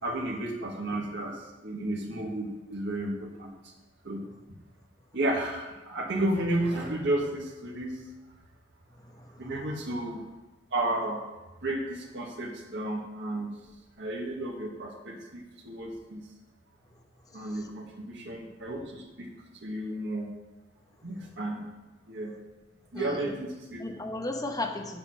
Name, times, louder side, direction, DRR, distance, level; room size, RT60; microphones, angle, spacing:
voice 1, 0.0-3.7 4.0-4.2 5.1-8.0 9.4-10.2 10.7-11.2 11.6-13.5 14.0-16.2 17.3-19.3 19.6-20.3 21.0-21.7 22.1-22.3 22.9-23.8, right 1 dB, 70° right, -1 dB, 1.6 m, -32 dB
voice 2, 9.0-9.4 22.9-23.3 23.8-25.0, left 2 dB, 20° left, 4 dB, 0.9 m, -35 dB
7.5 x 7.0 x 6.2 m, 1.1 s
head